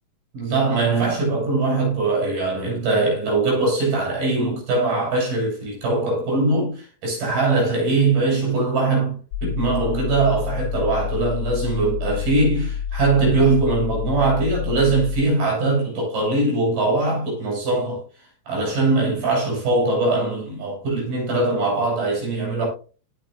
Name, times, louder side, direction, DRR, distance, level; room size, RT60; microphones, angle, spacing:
voice 1, 0.3-9.2 9.4-18.0 18.5-22.7, right 3 dB, 55° right, 8.5 m, -21 dB
sound 1, 9.3-15.2, left 8 dB, 80° left, 2.1 m, -28 dB
18.0 x 6.5 x 2.6 m
omnidirectional pair, 5.1 m